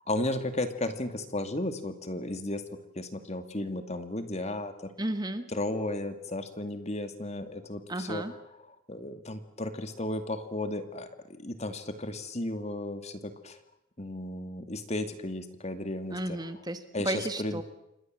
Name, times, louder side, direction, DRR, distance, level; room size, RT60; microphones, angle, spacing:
voice 1, 0.1-2.6 3.0-4.9 5.5-8.2 8.9-13.6 14.0-16.4 16.9-17.6, left 1 dB, 30° left, 8 dB, 2.4 m, -34 dB
voice 2, 5.0-5.5 7.9-8.3 16.1-17.6, right 1 dB, 20° right, 9 dB, 1.6 m, -33 dB
28.5 x 24.5 x 7.7 m, 0.85 s
head